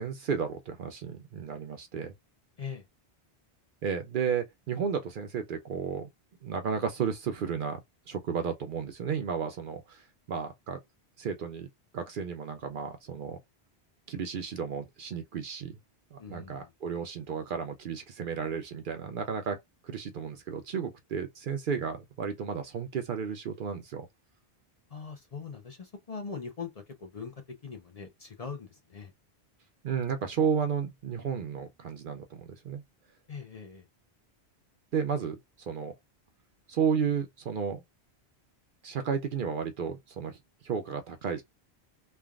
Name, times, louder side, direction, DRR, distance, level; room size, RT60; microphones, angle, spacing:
voice 1, 0.0-2.1 3.8-6.1 6.4-7.8 8.1-10.8 11.2-11.7 11.9-13.4 14.1-15.8 16.1-19.6 19.8-24.1 29.8-32.8 34.9-35.9 36.7-37.8 38.8-41.4, right 6 dB, 60° right, 0.6 m, -33 dB
voice 2, 16.2-16.6 24.9-27.3 27.6-29.1 33.3-33.8, left 5 dB, 45° left, 0.6 m, -41 dB
3.3 x 2.2 x 2.3 m
omnidirectional pair, 1.1 m